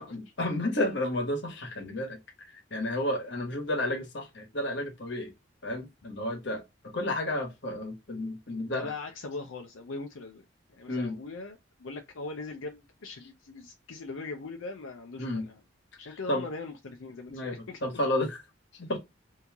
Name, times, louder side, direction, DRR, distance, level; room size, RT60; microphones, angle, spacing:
voice 1, 0.0-5.3 5.6-6.6 6.9-8.9 10.9-11.2 15.2-15.4 16.3-16.4 17.3-17.5 17.8-18.4 18.7-19.0, left 1 dB, 60° left, 1.2 m, -31 dB
voice 2, 8.7-10.4 10.7-15.6 16.0-17.8, left 3 dB, 85° left, 0.6 m, -40 dB
3.0 x 2.8 x 3.4 m
head